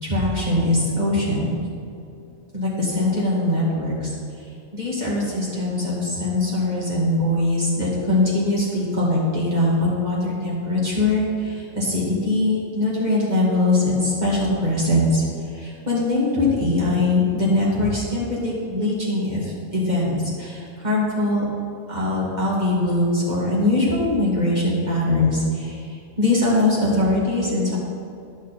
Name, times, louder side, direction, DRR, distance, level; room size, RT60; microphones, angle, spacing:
voice 1, 0.0-1.5 2.5-4.1 4.7-15.2 15.6-21.4 21.9-25.8 26.2-27.8, left 2 dB, 35° right, -7 dB, 2.1 m, -22 dB
10.0 x 6.6 x 4.2 m, 2.5 s
omnidirectional pair, 1.4 m